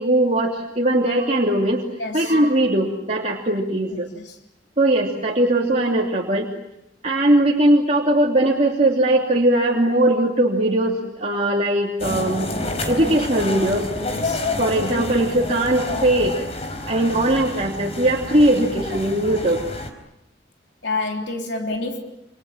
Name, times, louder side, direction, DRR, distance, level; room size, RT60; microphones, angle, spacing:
voice 1, 0.0-1.8 2.1-4.1 4.8-6.5 7.0-12.5 12.9-13.9 14.4-16.4 16.9-19.6, right 1 dB, 40° right, 3.0 m, -20 dB
voice 2, 2.0-2.3 4.3-4.4 14.1-14.4 20.8-22.0, left 3 dB, 75° left, 3.4 m, -28 dB
sound 1, 12.0-19.9, left 2 dB, 35° left, 4.3 m, -29 dB
29.0 x 27.0 x 7.4 m
head